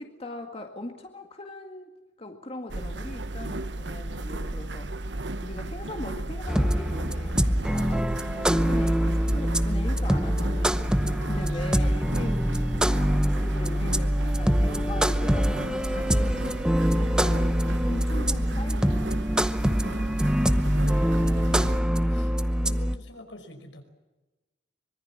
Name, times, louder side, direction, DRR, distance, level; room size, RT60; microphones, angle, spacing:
voice 1, 0.0-1.9 2.2-8.0 8.3-10.9 11.3-12.9 13.2-17.5 17.8-19.7, left 1 dB, 30° left, 4 dB, 2.0 m, -40 dB
sound 1, 2.7-21.8, right 2 dB, 70° right, 1.2 m, -34 dB
sound 2, 6.5-23.0, equal, 5° right, 0.8 m, -24 dB
voice 2, 20.5-21.4 22.1-23.8, left 1 dB, 80° left, 6 dB, 5.4 m, -45 dB
24.5 x 23.0 x 7.4 m, 1.1 s
head